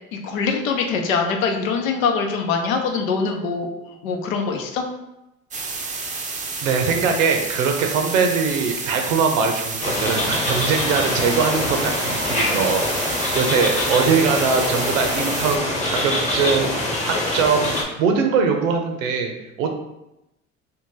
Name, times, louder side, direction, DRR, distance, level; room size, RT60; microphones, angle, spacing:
voice 1, 0.1-3.7 4.0-4.8, left 5 dB, 85° left, 3 dB, 0.7 m, -23 dB
sound 1, 5.5-15.6, right 4 dB, 20° right, 0.5 m, -30 dB
voice 2, 6.6-12.8 13.3-16.8 17.0-17.7 18.0-19.7, right 5 dB, 80° right, 4 dB, 0.7 m, -21 dB
sound 2, 9.8-17.8, left 1 dB, 20° left, 1.0 m, -24 dB
2.9 x 2.6 x 3.7 m, 0.91 s
hypercardioid pair, 85°, 39 cm